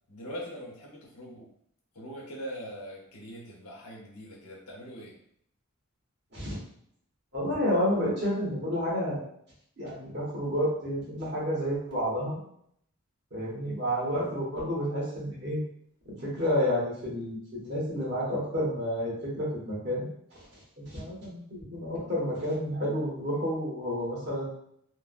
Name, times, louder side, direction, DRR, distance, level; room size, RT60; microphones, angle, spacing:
voice 1, 0.1-1.5 1.9-5.1, equal, 80° left, -2 dB, 0.9 m, -42 dB
voice 2, 7.3-9.2 9.8-12.4 13.3-15.6 16.0-20.1 20.8-24.6, equal, 50° right, -7 dB, 1.3 m, -30 dB
3.3 x 2.1 x 2.4 m, 0.69 s
head